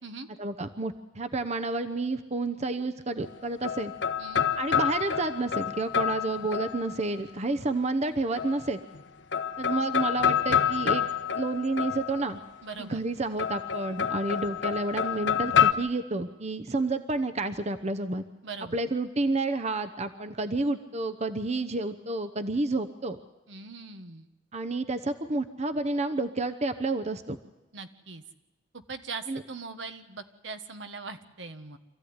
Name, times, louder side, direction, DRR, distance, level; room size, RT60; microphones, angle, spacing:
voice 1, 0.4-3.9 4.6-8.8 9.6-11.1 11.3-12.4 12.8-18.2 18.7-23.2 24.5-27.4 29.3-29.4, right 2 dB, 35° right, 9 dB, 0.9 m, -30 dB
sound 1, 3.2-7.2 8.4-9.0 9.3-12.5 13.4-15.7, left 8 dB, 70° left, 1.1 m, -28 dB
voice 2, 12.6-13.0 18.4-18.8 23.5-24.3 27.7-28.2 28.7-31.8, right 4 dB, 75° right, 9 dB, 1.5 m, -41 dB
26.0 x 15.0 x 9.7 m, 1.1 s
head